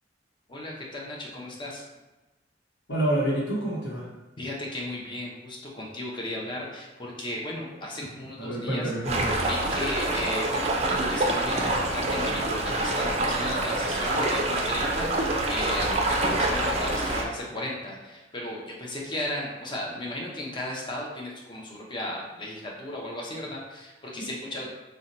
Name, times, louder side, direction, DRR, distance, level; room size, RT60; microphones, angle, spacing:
voice 1, 0.5-1.9 4.4-8.9 9.5-24.7, left 1 dB, 25° left, -3 dB, 0.6 m, -35 dB
voice 2, 2.9-4.1 8.4-9.4, right 1 dB, 80° left, -4 dB, 1.0 m, -28 dB
sound 1, 9.0-17.2, right 2 dB, 35° right, 0.4 m, -26 dB
2.6 x 2.1 x 4.0 m, 1.1 s
head